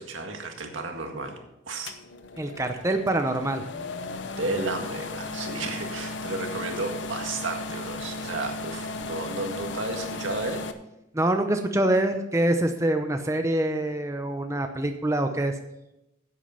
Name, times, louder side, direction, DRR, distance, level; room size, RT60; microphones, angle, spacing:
voice 1, 0.0-1.4 1.7-1.9 4.4-10.6, right 2 dB, 80° right, 3 dB, 1.9 m, -32 dB
sound 1, 1.9-10.7, left 3 dB, 70° left, 0.8 m, -36 dB
voice 2, 2.4-3.6 11.1-15.5, right 1 dB, 15° right, 6 dB, 0.6 m, -25 dB
10.5 x 8.4 x 5.6 m, 0.89 s
head